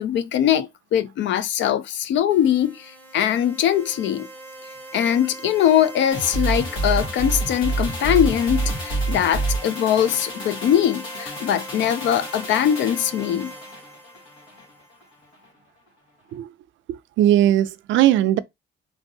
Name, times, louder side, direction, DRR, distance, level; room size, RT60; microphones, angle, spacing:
voice 1, 0.0-4.3 4.9-13.5, left 10 dB, 70° left, 0.4 m, -21 dB
sound 1, 2.3-15.0, right 2 dB, 10° left, 0.8 m, -40 dB
sound 2, 6.1-14.7 15.0-15.1, right 2 dB, 90° left, 1.3 m, -28 dB
voice 2, 16.9-18.4, right 12 dB, 75° right, 0.4 m, -19 dB
3.0 x 2.5 x 2.6 m
cardioid pair, 90°, 20 cm